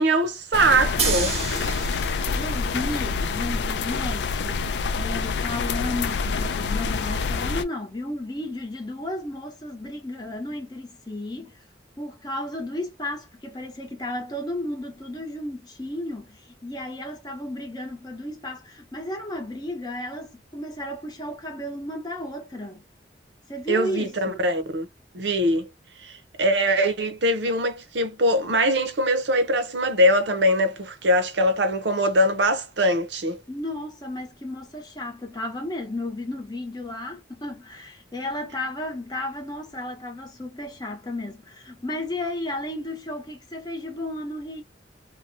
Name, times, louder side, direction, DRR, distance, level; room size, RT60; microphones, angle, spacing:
voice 1, 0.0-1.4 23.7-24.9 25.1-25.7 26.0-26.1 26.4-33.4, equal, 75° right, 0.7 m, -22 dB
sound 1, 0.5-7.6, left 5 dB, 70° left, 0.4 m, -27 dB
sound 2, 1.0-7.0, right 6 dB, 35° right, 0.6 m, -34 dB
voice 2, 2.3-4.6 5.0-11.5 12.0-22.8 23.5-24.5 33.5-44.6, left 1 dB, 25° left, 0.8 m, -33 dB
2.8 x 2.2 x 2.6 m
head